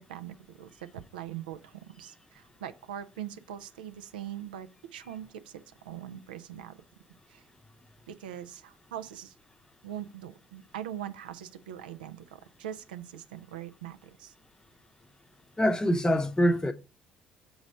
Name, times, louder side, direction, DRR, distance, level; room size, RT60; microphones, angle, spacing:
voice 1, 0.0-6.8 7.3-7.5 8.1-9.4 9.8-14.3, right 10 dB, 75° right, 0.4 m, -42 dB
voice 2, 15.6-16.7, equal, 15° left, 0.8 m, -24 dB
6.3 x 4.0 x 5.0 m
figure-of-eight pair, 50°, 5 cm